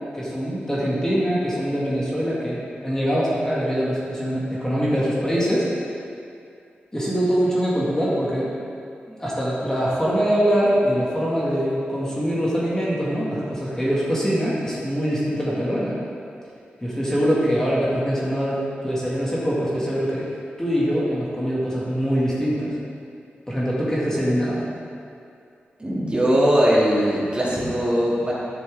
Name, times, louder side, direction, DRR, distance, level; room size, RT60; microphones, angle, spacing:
voice 1, 0.1-5.7 6.9-8.5 9.1-16.0 16.8-20.3 20.6-22.7 23.5-24.7, equal, 15° left, -7 dB, 2.0 m, -23 dB
voice 2, 25.8-28.3, equal, 25° right, -7 dB, 2.2 m, -20 dB
11.0 x 6.2 x 3.6 m, 2.5 s
cardioid pair, 65°, 4 cm